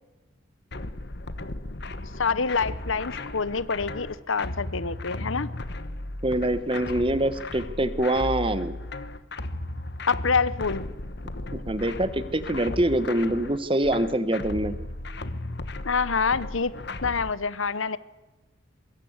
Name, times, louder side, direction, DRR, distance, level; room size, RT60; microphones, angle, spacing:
sound 1, 0.7-17.3, left 2 dB, 55° left, 1.3 m, -35 dB
voice 1, 2.2-5.5 10.1-10.8 15.8-16.7 17.0-18.0, left 5 dB, 75° left, 17 dB, 1.0 m, -26 dB
voice 2, 6.2-8.7 11.5-14.7, right 1 dB, 25° right, 13 dB, 1.3 m, -25 dB
24.5 x 22.5 x 8.2 m, 1.1 s
head